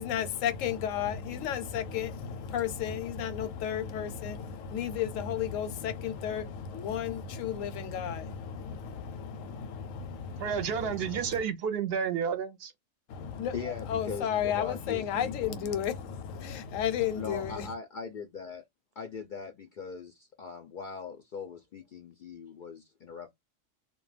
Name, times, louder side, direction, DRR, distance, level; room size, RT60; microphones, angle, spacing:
voice 1, 0.0-11.4 13.1-17.7, left 9 dB, 90° left, 1.0 m, -33 dB
voice 2, 10.4-12.7, right 7 dB, 60° right, 0.7 m, -31 dB
voice 3, 13.5-15.7 16.4-16.6 17.1-18.6 19.0-23.3, left 5 dB, 65° left, 0.5 m, -40 dB
2.3 x 2.1 x 3.1 m
omnidirectional pair, 1.3 m